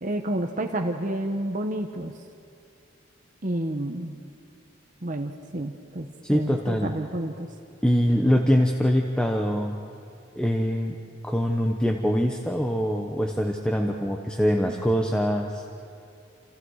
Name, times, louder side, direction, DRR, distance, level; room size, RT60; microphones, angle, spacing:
voice 1, 0.0-2.1 3.4-4.2 5.0-7.5 14.6-14.8, right 1 dB, 40° right, 4 dB, 1.2 m, -30 dB
voice 2, 6.2-6.9 7.8-9.7 10.3-11.0 11.2-15.6, equal, 5° left, 2 dB, 1.1 m, -23 dB
29.0 x 28.0 x 4.9 m, 2.6 s
head